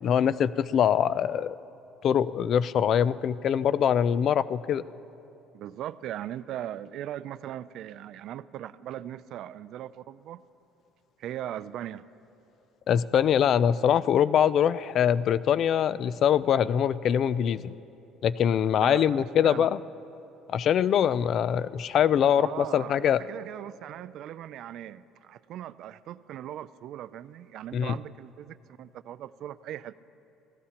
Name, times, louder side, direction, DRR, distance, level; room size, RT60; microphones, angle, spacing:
voice 1, 0.0-1.6 2.0-4.8 12.9-17.7 18.2-19.8 20.5-23.2 27.7-27.9, left 9 dB, 40° left, 17 dB, 0.3 m, -23 dB
voice 2, 5.5-10.4 11.2-12.0 18.8-19.7 22.4-30.0, right 11 dB, 50° right, 16 dB, 0.3 m, -39 dB
27.5 x 16.0 x 2.9 m, 2.9 s
cardioid pair, 160°, 0 cm